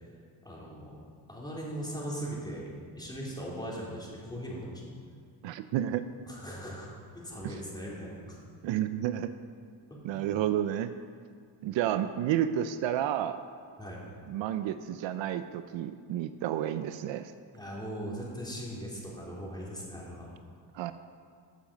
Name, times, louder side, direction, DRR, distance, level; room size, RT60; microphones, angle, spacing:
voice 1, 0.4-0.9 1.3-5.0 6.3-6.9 7.1-8.4 9.9-10.2 13.8-14.0 17.5-20.3, equal, 10° left, -5 dB, 3.5 m, -39 dB
voice 2, 5.4-6.0 7.4-7.5 8.6-9.3 10.0-10.9 11.6-13.4 14.3-17.3 20.7-20.9, right 11 dB, 75° right, 11 dB, 0.6 m, -31 dB
14.5 x 7.4 x 5.2 m, 2.1 s
cardioid pair, 100°, 45 cm